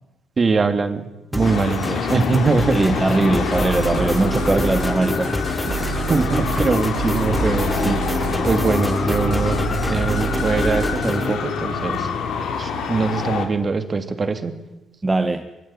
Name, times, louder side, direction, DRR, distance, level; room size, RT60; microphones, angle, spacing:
voice 1, 0.4-1.1 1.3-3.0 6.1-8.0 8.4-9.6 9.9-12.1 12.6-14.6, right 4 dB, 35° right, 8 dB, 2.9 m, -22 dB
sound 1, 1.3-11.3, left 1 dB, 5° left, 1.2 m, -27 dB
Traffic noise roadway noise, 1.4-13.4, left 6 dB, 80° left, 4.1 m, -26 dB
voice 2, 2.7-5.8 15.0-15.5, right 2 dB, 20° right, 6 dB, 1.6 m, -21 dB
sound 2, 3.5-11.2, right 8 dB, 55° right, 2.9 m, -30 dB
23.5 x 23.5 x 9.1 m, 1.0 s
cardioid pair, 90°, 0 cm